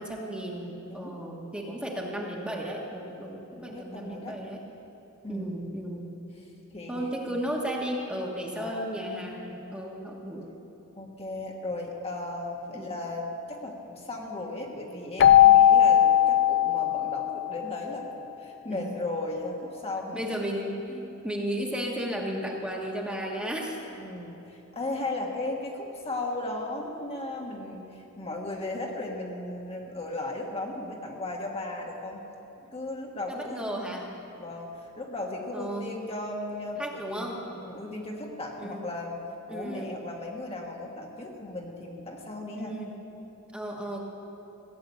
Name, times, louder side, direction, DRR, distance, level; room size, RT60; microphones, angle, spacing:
voice 1, 0.0-4.6 5.3-6.1 6.9-10.5 12.7-12.9 18.7-19.0 20.1-23.8 33.3-34.1 35.5-35.9 36.8-37.5 38.6-38.8 39.5-39.9 42.5-42.9 43.5-44.0, equal, 5° right, -2 dB, 1.4 m, -34 dB
voice 2, 0.9-1.2 3.5-4.4 5.2-5.6 6.7-7.4 8.5-8.9 10.9-20.2 24.0-32.2 32.7-33.6 34.4-39.2 39.5-42.7, left 2 dB, 30° left, -1 dB, 1.5 m, -36 dB
Keyboard (musical), 15.2-17.8, left 11 dB, 55° left, 0.4 m, -19 dB
16.5 x 7.7 x 8.7 m, 3.0 s
head